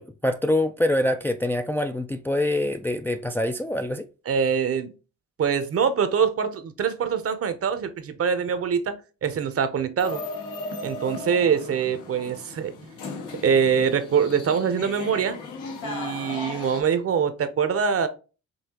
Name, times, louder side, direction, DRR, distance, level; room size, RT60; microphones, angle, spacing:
voice 1, 0.0-4.1, left 1 dB, 5° left, 0.3 m, -25 dB
voice 2, 4.3-4.9 5.4-10.2 10.8-12.7 13.4-15.4 15.8-18.1, right 7 dB, 50° right, 0.8 m, -24 dB
sound 1, 10.0-16.8, left 3 dB, 80° left, 1.2 m, -36 dB
5.5 x 2.8 x 2.8 m
cardioid pair, 90°, 30 cm